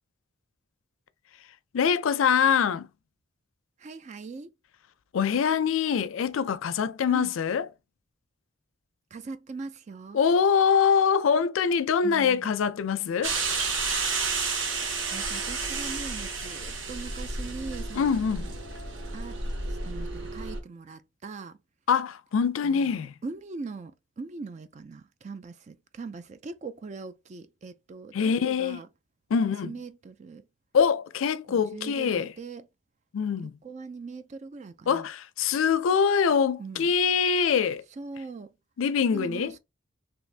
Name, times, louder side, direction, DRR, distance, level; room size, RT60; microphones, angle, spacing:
voice 1, 1.7-2.9 5.1-7.7 10.1-13.4 17.9-18.5 21.9-23.1 28.1-28.8 29.3-29.7 30.7-32.3 33.1-33.5 34.9-37.8 38.8-39.5, left 6 dB, 85° left, 0.4 m, -24 dB
voice 2, 3.8-4.5 7.1-7.3 9.1-10.2 12.0-12.5 15.1-18.5 19.1-19.4 19.7-21.6 22.6-28.9 29.6-30.5 31.5-32.7 33.4-35.1 36.6-36.9 37.9-38.5 39.1-39.6, right 4 dB, 35° right, 0.3 m, -41 dB
sound 1, 13.2-20.6, right 4 dB, 70° right, 0.9 m, -31 dB
3.3 x 2.9 x 2.4 m
head